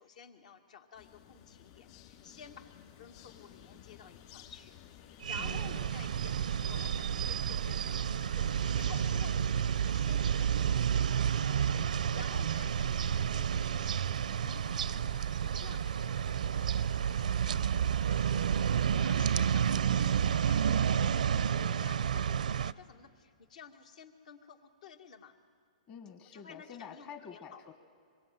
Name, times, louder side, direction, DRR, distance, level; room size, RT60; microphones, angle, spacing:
voice 1, 0.0-4.7 5.2-25.4 26.3-27.6, left 7 dB, 70° left, 6 dB, 2.3 m, -53 dB
sound 1, 0.9-20.7, left 10 dB, 45° left, 3.7 m, -55 dB
sound 2, 5.2-22.7, right 8 dB, 90° right, 0.6 m, -30 dB
voice 2, 5.4-5.9 25.9-27.7, left 7 dB, 30° left, 6 dB, 1.3 m, -48 dB
25.0 x 23.0 x 9.1 m, 2.3 s
hypercardioid pair, 155°, 4 cm